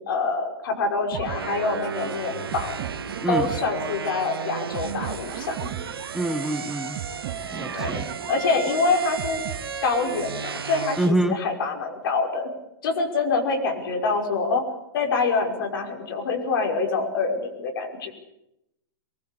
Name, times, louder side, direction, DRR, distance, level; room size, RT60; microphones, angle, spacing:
voice 1, 0.0-2.8 3.3-5.7 7.7-9.5 9.8-12.5 12.8-14.6 14.9-18.1, left 4 dB, 65° left, 3 dB, 5.7 m, -26 dB
sound 1, 1.1-10.1, right 11 dB, 55° right, 1.6 m, -37 dB
sound 2, 1.2-11.1, right 6 dB, 85° right, 1.4 m, -34 dB
voice 2, 3.2-3.5 6.1-7.0 7.5-8.1 11.0-11.4, right 1 dB, 5° right, 6 dB, 1.6 m, -25 dB
23.5 x 20.5 x 8.5 m, 0.86 s
hypercardioid pair, 110°, 12 cm